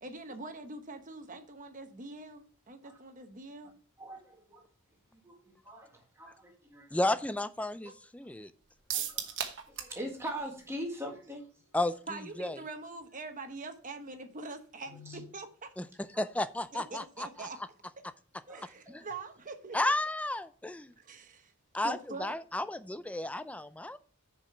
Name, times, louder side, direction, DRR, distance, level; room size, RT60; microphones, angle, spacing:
voice 1, 0.0-3.7 12.1-15.7 16.7-17.6 18.5-19.9 21.0-21.5 21.8-22.3, right 3 dB, 35° right, 1.0 m, -44 dB
voice 2, 4.0-4.7 5.1-7.1 7.8-7.9 8.9-9.3 9.7-11.4 14.9-15.2 16.1-16.2 18.5-18.6, equal, 10° right, 1.6 m, -42 dB
voice 3, 6.9-8.5 11.7-11.9 12.4-12.6 15.8-15.9 16.2-17.5 19.7-20.9 21.7-24.0, left 1 dB, 5° left, 0.3 m, -32 dB
sound 1, 8.9-10.0 10.3-10.4 10.7-10.8, right 9 dB, 55° right, 1.1 m, -35 dB
6.9 x 5.1 x 5.7 m
head